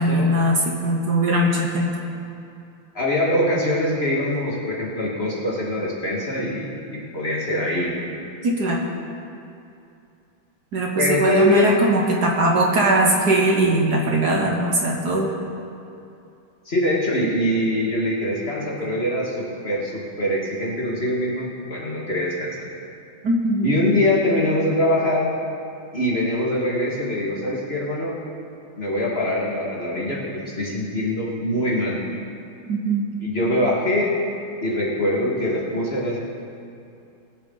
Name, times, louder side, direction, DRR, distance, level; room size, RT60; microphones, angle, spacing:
voice 1, 0.0-1.9 8.4-8.8 10.7-15.3 23.2-23.7 32.7-33.0, right 1 dB, 55° right, 0 dB, 1.6 m, -20 dB
voice 2, 2.9-7.9 11.0-11.7 16.7-22.6 23.6-25.3 25.9-28.2 28.8-32.0 33.2-34.2 34.6-36.2, left 1 dB, 30° left, -5 dB, 2.0 m, -23 dB
21.5 x 8.2 x 3.9 m, 2.6 s
omnidirectional pair, 2.2 m